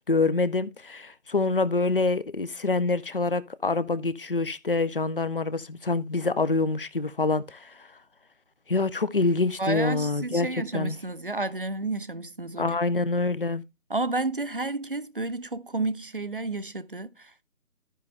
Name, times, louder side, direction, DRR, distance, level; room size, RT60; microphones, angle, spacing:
voice 1, 0.1-7.9 8.7-10.5 10.7-11.0 12.6-13.6, left 3 dB, 40° left, 0.5 m, -26 dB
voice 2, 9.6-12.8 13.9-17.4, right 2 dB, 40° right, 0.5 m, -31 dB
13.5 x 5.4 x 3.3 m
figure-of-eight pair, 160°, 41 cm